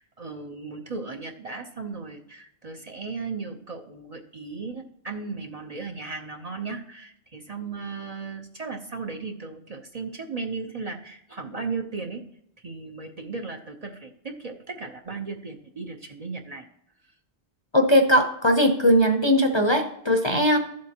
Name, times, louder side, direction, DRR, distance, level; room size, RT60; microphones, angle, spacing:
voice 1, 0.0-12.2 12.6-16.6 20.3-20.4, right 4 dB, 40° right, 4 dB, 0.8 m, -36 dB
voice 2, 17.7-20.6, equal, 30° left, 4 dB, 0.7 m, -19 dB
13.5 x 7.6 x 2.9 m, 0.74 s
omnidirectional pair, 1.1 m